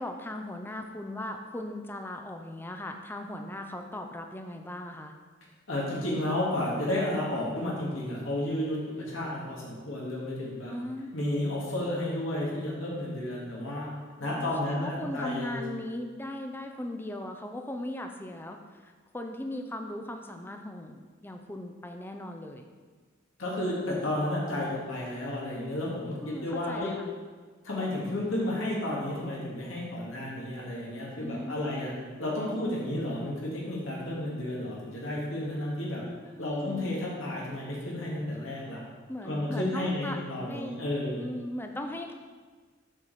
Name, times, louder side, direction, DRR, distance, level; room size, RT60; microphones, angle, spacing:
voice 1, 0.0-5.1 10.7-11.1 14.2-22.7 26.2-27.1 31.2-32.0 36.4-37.0 39.1-40.2 40.5-40.8 41.2-42.1, left 1 dB, 10° left, 4 dB, 0.5 m, -38 dB
voice 2, 5.7-8.8 9.1-10.7 11.1-13.9 14.2-15.6 23.4-26.9 27.6-31.9 32.2-36.0 36.4-38.8 39.2-41.2, left 1 dB, 80° left, -5 dB, 1.9 m, -32 dB
7.4 x 6.4 x 4.0 m, 1.4 s
head